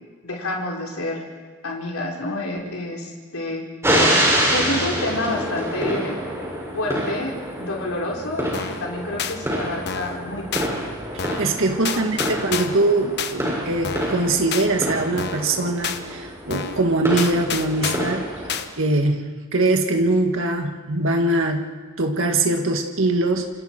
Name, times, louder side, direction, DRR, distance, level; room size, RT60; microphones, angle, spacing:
voice 1, 0.2-1.2 1.6-3.6 4.5-6.2 6.7-10.8 11.9-12.3, left 2 dB, 70° left, -1 dB, 4.0 m, -29 dB
sound 1, 3.8-18.6, equal, 10° right, 6.2 m, -26 dB
sound 2, 8.5-8.8 9.2-9.4 9.9-10.2 10.5-10.7 11.2-11.5 11.9-12.8 13.2-13.3 13.8-14.2 14.5-14.7 15.2-15.5 15.8-16.0 16.5-16.8 17.2-18.2 18.5-18.7, left 7 dB, 50° left, 1.2 m, -29 dB
voice 2, 11.1-18.3 18.8-21.7 22.0-23.5, right 2 dB, 60° right, 3 dB, 2.0 m, -22 dB
27.5 x 26.5 x 4.5 m, 1.4 s
head